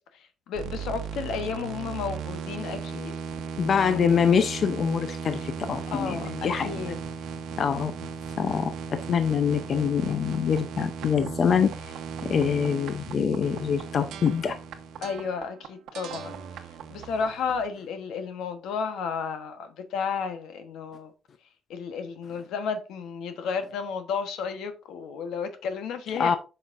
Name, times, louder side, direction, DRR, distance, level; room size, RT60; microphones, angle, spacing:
voice 1, 0.1-3.1 5.9-7.0 15.0-16.4 16.9-21.1 21.7-26.4, left 6 dB, 90° left, 1.1 m, -32 dB
sound 1, 0.5-17.7, right 5 dB, 85° right, 1.0 m, -36 dB
voice 2, 3.6-6.8 7.6-8.1 8.4-11.9 12.2-14.6 26.2-26.4, left 7 dB, 50° left, 0.6 m, -25 dB
8.0 x 5.6 x 2.6 m
cardioid pair, 120°, 0 cm